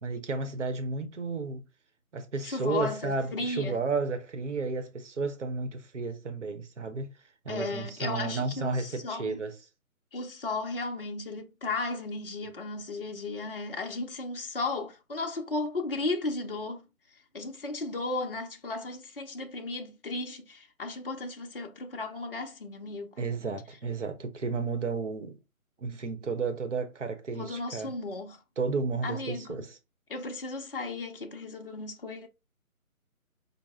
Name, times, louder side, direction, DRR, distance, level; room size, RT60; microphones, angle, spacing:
voice 1, 0.0-1.6 2.1-7.1 7.4-9.5 23.2-25.4 25.8-27.9 28.6-29.7, right 4 dB, 55° right, 0.9 m, -32 dB
voice 2, 2.4-3.8 7.5-9.4 10.1-16.9 17.3-23.2 27.3-28.4 29.0-29.6 30.1-32.3, left 3 dB, 40° left, 0.6 m, -35 dB
5.6 x 2.1 x 3.5 m
figure-of-eight pair, 165°, 43 cm